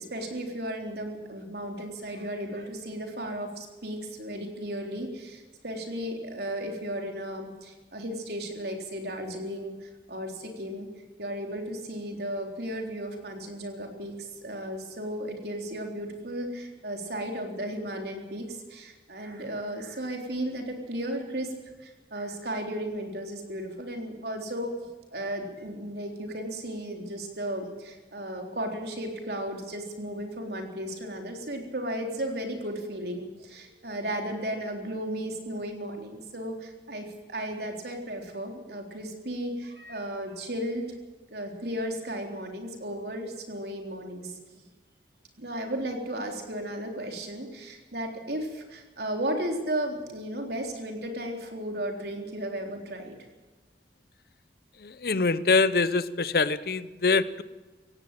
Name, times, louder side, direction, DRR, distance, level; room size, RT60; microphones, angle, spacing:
voice 1, 0.0-10.9 11.2-21.5 21.8-40.9 41.3-44.7 45.4-53.2, right 1 dB, 60° right, 2 dB, 3.8 m, -35 dB
voice 2, 54.8-57.4, left 4 dB, 55° left, 16 dB, 0.7 m, -24 dB
17.0 x 17.0 x 9.0 m, 1.2 s
head